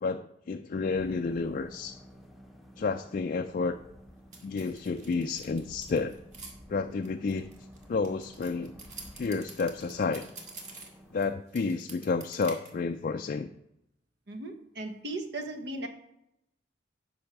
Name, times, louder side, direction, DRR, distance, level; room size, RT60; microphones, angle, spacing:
voice 1, 0.0-2.0 2.8-3.8 4.4-6.2 6.7-7.5 7.9-8.7 9.1-10.3 11.1-13.5, left 4 dB, 45° left, 6 dB, 0.4 m, -30 dB
sound 1, 0.9-11.3, equal, ahead, 0.9 m, -52 dB
sound 2, 4.3-6.5 7.0-11.3 11.5-12.7, right 3 dB, 40° right, 1.8 m, -47 dB
voice 2, 14.3-15.9, right 2 dB, 65° right, 7 dB, 1.1 m, -37 dB
8.6 x 5.6 x 5.9 m, 0.82 s
head